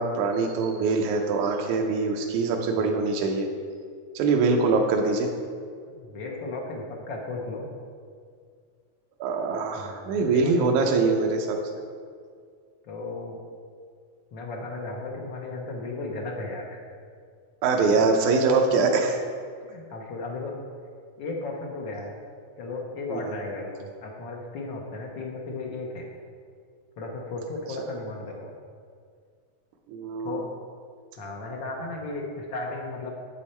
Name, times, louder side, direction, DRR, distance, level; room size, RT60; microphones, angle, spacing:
voice 1, 0.0-3.5 4.2-5.3 9.2-11.6 17.6-19.2 23.1-23.3 29.9-30.4, right 4 dB, 85° right, 2 dB, 2.2 m, -23 dB
voice 2, 5.9-7.7 9.7-11.0 12.9-13.4 14.3-16.8 19.6-20.5 21.2-22.2 22.6-26.1 27.0-28.5 30.2-30.5 31.2-33.1, left 2 dB, 90° left, -1 dB, 1.0 m, -35 dB
8.4 x 8.1 x 4.3 m, 2.1 s
omnidirectional pair, 3.4 m